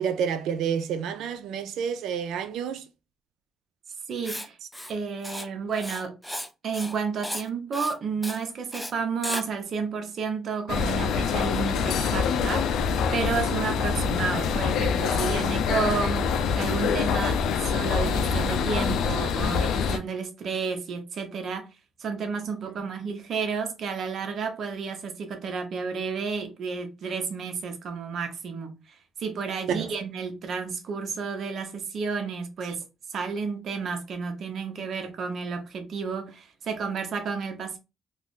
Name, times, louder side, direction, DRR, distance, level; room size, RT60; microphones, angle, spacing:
voice 1, 0.0-2.8 22.7-22.8 29.7-29.9, right 7 dB, 85° right, 0.3 m, -29 dB
voice 2, 4.1-4.6 4.9-6.2 6.6-12.7 13.1-21.7 22.0-32.8 33.1-37.8, right 5 dB, 60° right, 0.7 m, -31 dB
Writing, 4.2-4.5 4.7-4.9 5.2-5.5 5.7-6.5 6.7-7.0 7.2-7.5 7.7-7.9 8.2-8.4 8.7-8.9 9.2-9.4, equal, ahead, 0.4 m, -34 dB
sound 1, 10.7-20.0, left 6 dB, 80° left, 0.4 m, -25 dB
2.4 x 2.4 x 3.5 m
cardioid pair, 90°, 0 cm